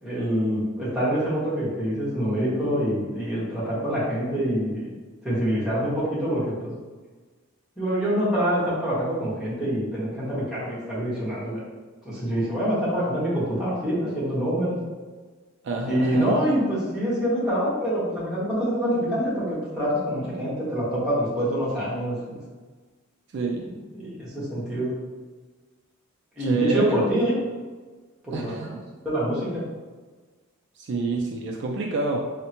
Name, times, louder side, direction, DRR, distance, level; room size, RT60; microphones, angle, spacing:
voice 1, 0.0-4.9 5.2-6.7 7.8-11.6 12.0-14.8 15.9-22.4 23.9-24.9 26.4-27.3 28.2-28.6 29.0-29.6, equal, ahead, -10 dB, 1.1 m, -25 dB
voice 2, 15.6-16.3 23.3-23.7 26.4-27.1 28.3-28.8 30.8-32.4, right 3 dB, 55° right, 0 dB, 0.3 m, -27 dB
3.5 x 2.1 x 2.9 m, 1.4 s
head